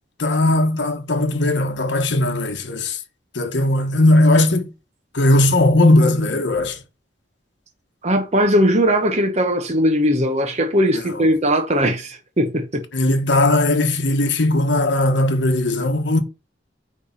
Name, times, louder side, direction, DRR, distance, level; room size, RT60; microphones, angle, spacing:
voice 1, 0.2-3.0 3.3-4.7 5.1-6.8 12.9-16.2, left 1 dB, 70° left, 1.3 m, -18 dB
voice 2, 8.0-12.8, equal, 35° right, 1.0 m, -19 dB
8.9 x 3.5 x 5.6 m
head